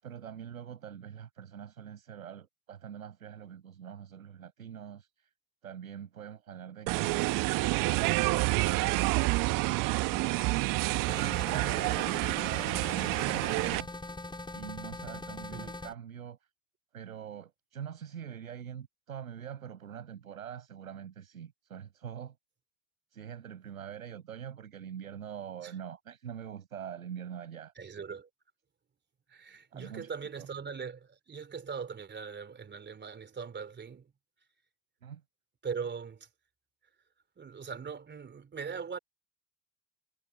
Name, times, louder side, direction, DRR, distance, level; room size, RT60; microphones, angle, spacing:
voice 1, 0.0-5.3 5.6-7.3 7.9-10.5 10.8-14.2 14.5-16.4 16.9-22.4 23.1-27.7 29.7-30.5 35.0-35.2, right 8 dB, 80° right, 5.9 m, -44 dB
sound 1, 6.9-13.8, right 22 dB, 50° right, 1.5 m, -28 dB
sound 2, 11.1-15.9, left 2 dB, 10° left, 4.2 m, -41 dB
voice 2, 27.8-28.3 29.3-34.1 35.6-36.3 37.4-39.0, right 6 dB, 25° right, 3.5 m, -40 dB
figure-of-eight pair, 75°, 41 cm